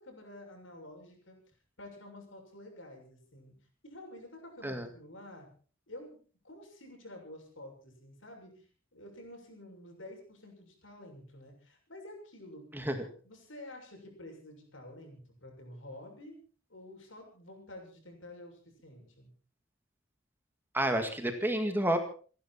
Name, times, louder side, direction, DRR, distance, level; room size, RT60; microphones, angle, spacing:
voice 1, 0.0-1.4 1.8-3.5 3.8-5.5 5.9-6.2 6.4-8.6 8.9-12.7 13.2-16.4 16.7-19.3, left 1 dB, 80° left, 2 dB, 6.6 m, -49 dB
voice 2, 20.7-22.0, right 1 dB, 10° right, 6 dB, 2.0 m, -30 dB
28.5 x 11.0 x 4.4 m, 0.40 s
head